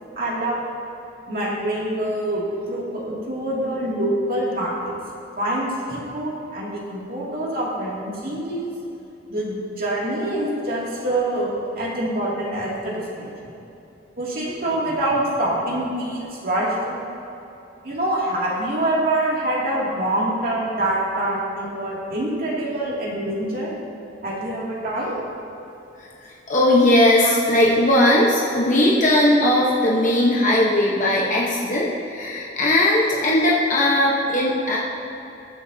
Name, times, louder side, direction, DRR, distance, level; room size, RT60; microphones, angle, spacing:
voice 1, 0.2-0.6 1.3-4.9 5.4-8.7 9.3-13.5 14.2-17.0 17.8-23.7 24.2-25.2, right 1 dB, 50° right, -5 dB, 2.6 m, -25 dB
voice 2, 26.0-34.8, left 1 dB, 45° left, -4 dB, 1.1 m, -18 dB
20.5 x 7.1 x 2.8 m, 3.0 s
head